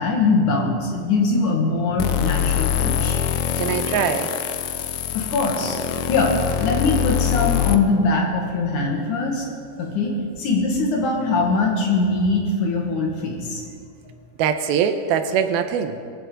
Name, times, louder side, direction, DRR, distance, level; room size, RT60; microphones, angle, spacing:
voice 1, 0.0-3.2 5.1-5.8 6.1-9.5 9.8-13.6, left 3 dB, 60° left, 0 dB, 3.2 m, -22 dB
sound 1, 2.0-7.8, left 10 dB, 80° left, 1.6 m, -24 dB
voice 2, 3.6-4.3 14.4-16.0, right 8 dB, 85° right, 8 dB, 2.7 m, -22 dB
22.5 x 15.0 x 3.9 m, 2.4 s
omnidirectional pair, 4.3 m